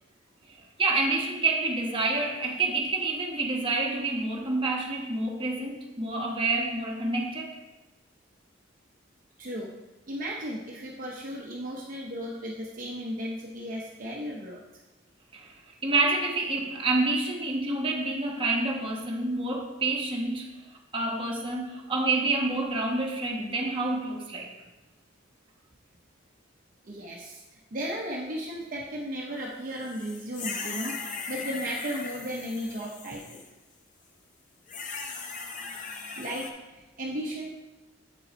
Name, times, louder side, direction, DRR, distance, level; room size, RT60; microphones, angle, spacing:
voice 1, 0.5-7.6 15.3-20.5 20.9-24.5, right 3 dB, 25° right, -1 dB, 1.1 m, -28 dB
voice 2, 9.4-9.7 10.1-14.6 26.8-27.4 27.7-33.4 36.2-37.5, equal, 45° right, -3 dB, 0.7 m, -35 dB
sound 1, 29.8-33.5 34.7-36.5, left 4 dB, 40° left, 0.7 m, -38 dB
7.9 x 5.3 x 4.3 m, 1.1 s
head